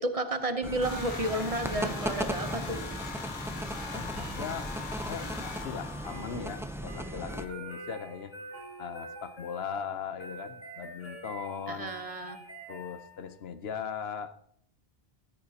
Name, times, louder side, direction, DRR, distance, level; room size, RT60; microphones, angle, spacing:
voice 1, 0.0-2.8 11.7-12.4, right 1 dB, 40° right, 8 dB, 0.9 m, -32 dB
The Entertainer Classic Ice Cream Truck Song. Fully Looped, 0.6-13.4, right 1 dB, 35° left, 3.5 m, -46 dB
sound 1, 0.6-7.4, equal, 5° right, 0.5 m, -37 dB
sound 2, 0.8-7.0, left 5 dB, 50° left, 1.2 m, -42 dB
voice 2, 3.9-4.7 5.1-8.4 8.8-12.0 12.7-14.4, left 7 dB, 80° left, 12 dB, 1.0 m, -39 dB
14.0 x 13.5 x 2.8 m, 0.68 s
omnidirectional pair, 1.0 m